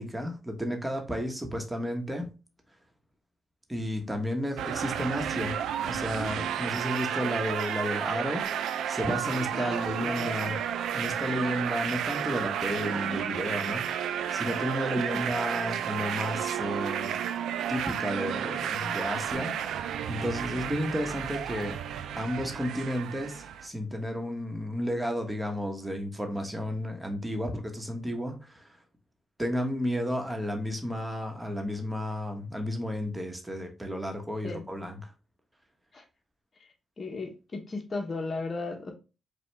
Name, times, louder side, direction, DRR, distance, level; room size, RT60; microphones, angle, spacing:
voice 1, 0.0-2.3 3.7-10.6 10.9-17.1 17.7-21.8 22.2-28.8 29.4-35.1, equal, 10° right, 4 dB, 1.1 m, -32 dB
sound 1, 4.6-23.7, right 9 dB, 85° right, 0.3 m, -32 dB
voice 2, 7.1-7.4 9.5-10.6 34.4-34.6 35.9-36.0 36.6-38.9, left 3 dB, 40° left, 3 dB, 0.9 m, -37 dB
5.0 x 2.3 x 3.3 m, 0.31 s
cardioid pair, 60°, 0 cm